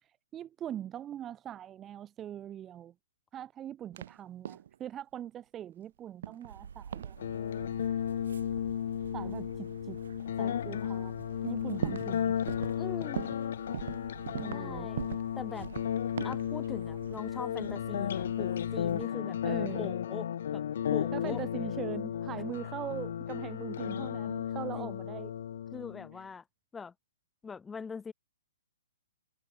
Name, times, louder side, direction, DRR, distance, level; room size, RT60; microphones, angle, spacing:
voice 1, 0.0-2.9 3.3-7.2 9.1-10.0 10.4-11.1 11.4-12.4 14.3-14.9 19.4-19.9 21.1-25.3 26.2-26.3, right 10 dB, 15° right, 1.0 m, -41 dB
sound 1, 3.9-4.2 4.5-4.8 6.2-6.6 6.9-7.2 8.5-8.7 9.6-9.7 10.3-10.4 10.9-11.0 11.2-12.2 12.5-12.8 13.2-13.5 13.7-14.7 15.0-15.3 15.6-16.5, right 10 dB, 55° right, 4.7 m, -39 dB
sound 2, 6.5-19.1, right 7 dB, 80° right, 4.9 m, -49 dB
sound 3, 7.2-26.2, left 9 dB, 60° left, 0.3 m, -34 dB
voice 2, 12.8-13.3 14.4-15.0 15.4-15.7 16.2-19.4 19.7-21.4 24.7-25.0 25.7-26.4 26.7-26.9 27.4-28.1, left 5 dB, 10° left, 3.8 m, -42 dB
hypercardioid pair, 165°, 0 cm